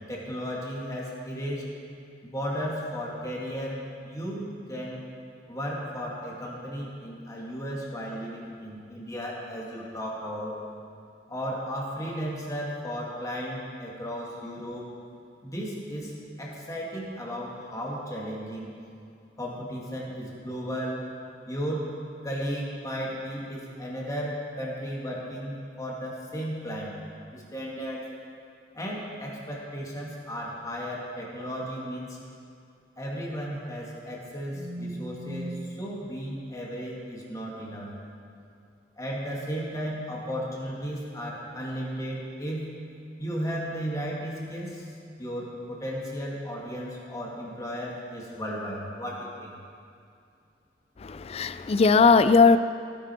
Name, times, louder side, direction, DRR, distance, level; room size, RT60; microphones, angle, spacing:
voice 1, 0.0-1.7 2.2-5.0 5.5-10.5 11.3-14.9 15.4-18.7 19.4-21.0 21.5-21.9 22.2-27.0 27.3-28.1 28.7-32.2 33.0-37.9 39.0-42.7 43.2-44.8 45.2-49.5, equal, 20° left, -4 dB, 2.3 m, -34 dB
voice 2, 51.0-52.6, left 4 dB, 35° left, 12 dB, 0.4 m, -19 dB
16.5 x 10.0 x 4.5 m, 2.4 s
head